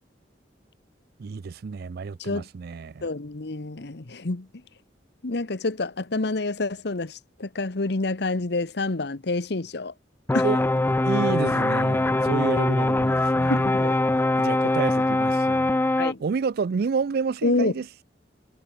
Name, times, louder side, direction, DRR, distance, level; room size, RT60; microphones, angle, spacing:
voice 1, 1.2-3.1 10.4-10.6 11.0-13.6 14.4-15.7 16.2-17.9, right 5 dB, 60° right, 0.4 m, -29 dB
voice 2, 3.0-4.5 5.2-9.9 10.3-10.5 13.5-14.0 16.0-16.2 17.4-17.7, left 2 dB, 65° left, 1.1 m, -27 dB
sound 1, 10.3-16.1, left 2 dB, 10° left, 0.4 m, -22 dB
head